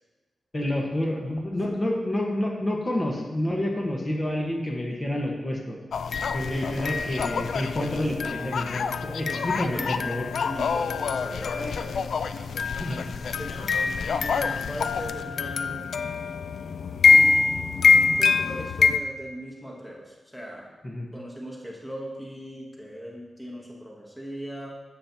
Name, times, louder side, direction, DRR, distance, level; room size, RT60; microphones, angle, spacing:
voice 1, 0.5-5.8 6.3-10.3 12.8-13.1 20.8-21.1, left 1 dB, 25° left, 0 dB, 1.1 m, -29 dB
sound 1, 5.9-19.0, left 5 dB, 80° left, 0.3 m, -24 dB
voice 2, 6.5-7.1 9.3-12.0 13.4-16.1 17.0-17.7 17.9-20.8 21.1-24.7, equal, 5° left, -2 dB, 1.1 m, -39 dB
9.6 x 7.2 x 2.8 m, 1.2 s
wide cardioid pair, 115°, 0 cm